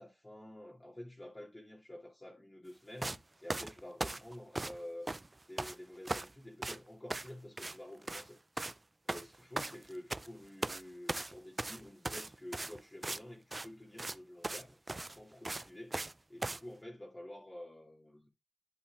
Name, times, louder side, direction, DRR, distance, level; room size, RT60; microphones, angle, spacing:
voice 1, 0.0-5.1 5.5-8.4 9.0-14.8 15.1-16.0 16.3-18.3, left 1 dB, 25° left, 2.4 m, -50 dB
sound 1, 3.0-3.2 3.5-4.8 5.1-5.8 6.0-6.3 6.6-6.8 7.1-7.3 7.6-8.3 8.6-8.8 9.1-10.3 10.6-10.8 11.1-13.2 13.5-13.7 14.0-14.2 14.4-14.6 14.9-16.1 16.4-16.6, right 2 dB, 30° right, 0.4 m, -38 dB
11.0 x 4.4 x 3.4 m
wide cardioid pair, 70°, 0 cm